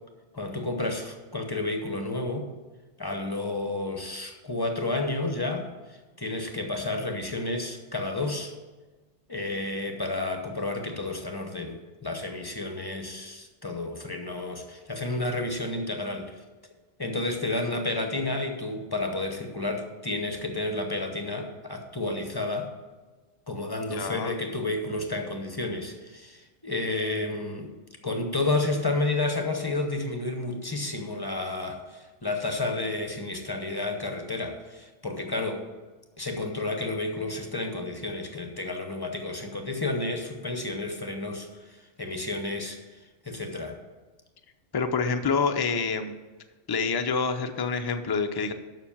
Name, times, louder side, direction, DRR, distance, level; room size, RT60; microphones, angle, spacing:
voice 1, 0.3-2.5 3.0-8.5 9.3-16.4 17.0-22.7 23.5-27.7 28.0-35.6 36.2-43.0 43.2-43.8, left 2 dB, 20° left, 4 dB, 0.8 m, -31 dB
voice 2, 23.9-24.3 44.7-46.2 46.7-48.5, left 5 dB, 35° left, 7 dB, 0.3 m, -27 dB
7.1 x 6.0 x 7.1 m, 1.3 s
omnidirectional pair, 1.2 m